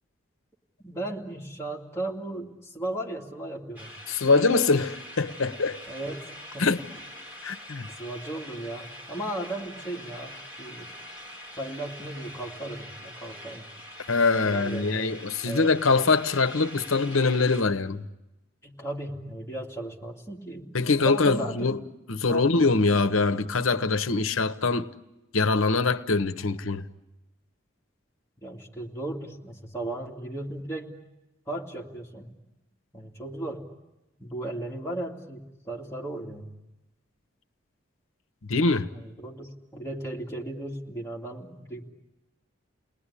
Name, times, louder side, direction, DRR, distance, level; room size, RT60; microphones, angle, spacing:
voice 1, 0.8-3.9 5.9-6.3 6.5-6.8 8.0-10.3 10.6-10.9 11.6-13.7 14.4-15.2 15.4-15.7 18.6-21.8 22.3-22.5 28.4-30.9 31.5-32.3 32.9-33.6 34.2-36.5 38.9-41.9, right 1 dB, 15° left, 2.6 m, -36 dB
sound 1, 3.8-17.6, equal, 10° right, 3.9 m, -44 dB
voice 2, 4.1-5.8 6.6-6.8 7.4-7.9 14.1-18.0 20.7-21.8 22.1-24.9 25.3-26.8 38.5-38.9, left 3 dB, 90° left, 1.0 m, -23 dB
29.5 x 20.0 x 10.0 m
head